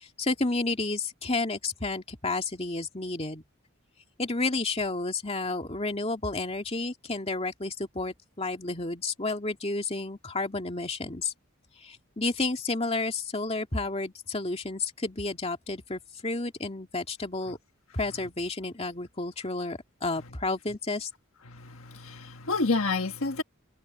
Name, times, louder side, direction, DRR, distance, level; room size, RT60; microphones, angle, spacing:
voice 1, 0.0-3.4 4.2-11.3 11.8-17.6 17.9-21.1, left 3 dB, 30° left, 2.5 m, -31 dB
voice 2, 21.4-23.4, left 3 dB, 75° left, 1.6 m, -29 dB
head